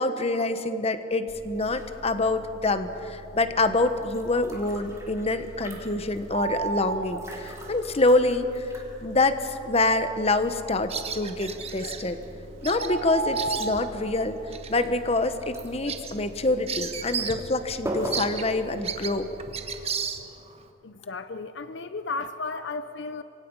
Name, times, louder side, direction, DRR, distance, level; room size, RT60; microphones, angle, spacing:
voice 1, 0.0-8.7 9.0-12.2 12.6-14.4 14.7-19.3, left 2 dB, 35° left, 10 dB, 1.1 m, -26 dB
sound 1, 1.3-19.8, equal, 15° right, 3.4 m, -41 dB
sound 2, 6.3-7.2 11.8-12.0 12.7-13.9, right 4 dB, 80° right, 1.2 m, -31 dB
Bird vocalization bird call bird song, 10.9-12.0 12.6-12.9 13.2-14.0 14.5-14.7 15.1-15.2 15.6-17.5 17.7-17.8 18.1-20.6, right 7 dB, 35° right, 1.4 m, -33 dB
voice 2, 20.8-23.2, left 3 dB, 70° left, 11 dB, 0.7 m, -34 dB
26.5 x 24.0 x 5.5 m, 3.0 s
head